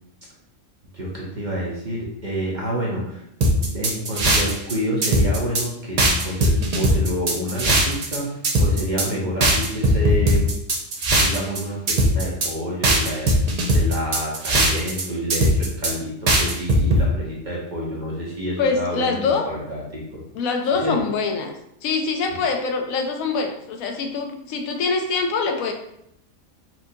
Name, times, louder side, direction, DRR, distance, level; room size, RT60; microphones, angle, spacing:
voice 1, 0.9-3.2 3.6-10.5 11.2-20.2 20.7-20.9 22.3-22.4, equal, 40° right, -4 dB, 0.7 m, -28 dB
sound 1, 3.4-4.7 5.0-5.6 6.0-8.2 8.4-9.1 9.4-11.6 11.9-12.5 12.8-15.0 15.3-15.9 16.3-17.0, right 1 dB, 65° right, 0.4 m, -19 dB
voice 2, 18.6-19.4 20.4-21.5 21.8-25.7, left 4 dB, 75° left, 4 dB, 1.0 m, -24 dB
4.2 x 2.5 x 2.7 m, 0.76 s
omnidirectional pair, 1.5 m